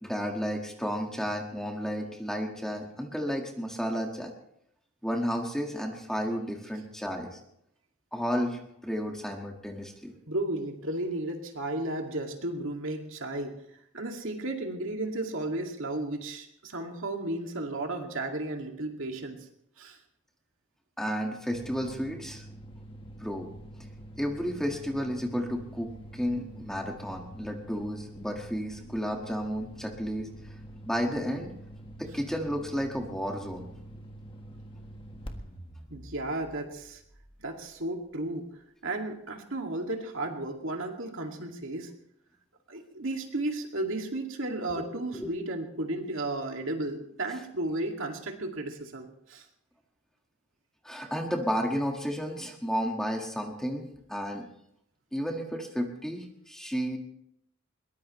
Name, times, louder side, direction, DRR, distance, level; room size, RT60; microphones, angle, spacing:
voice 1, 0.0-4.3 5.0-7.4 8.1-10.1 21.0-22.4 23.2-23.5 24.2-30.3 30.9-31.5 32.0-33.7 44.8-45.3 50.8-54.5 55.1-57.0, equal, ahead, 1 dB, 1.7 m, -32 dB
voice 2, 10.3-13.6 13.9-19.5 19.8-20.0 35.9-37.0 37.4-38.5 38.8-41.9 42.7-49.5, right 2 dB, 65° right, 3 dB, 2.3 m, -34 dB
sound 1, 21.5-37.9, right 1 dB, 25° left, 1.5 m, -46 dB
22.0 x 19.0 x 3.2 m, 0.75 s
head